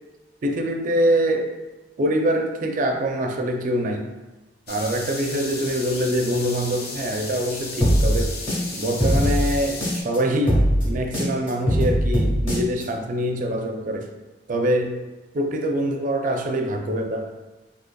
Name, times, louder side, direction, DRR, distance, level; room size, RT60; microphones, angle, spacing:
voice 1, 0.4-1.5 2.0-4.1 4.7-8.4 8.8-10.6 10.8-14.1 14.5-15.0 15.3-17.3, right 1 dB, 45° right, 3 dB, 0.4 m, -24 dB
sound 1, 4.7-10.0, left 3 dB, 60° left, 0.6 m, -34 dB
sound 2, 7.8-10.2 10.5-12.8, equal, 30° left, 1.1 m, -21 dB
3.9 x 2.8 x 2.2 m, 1.1 s
head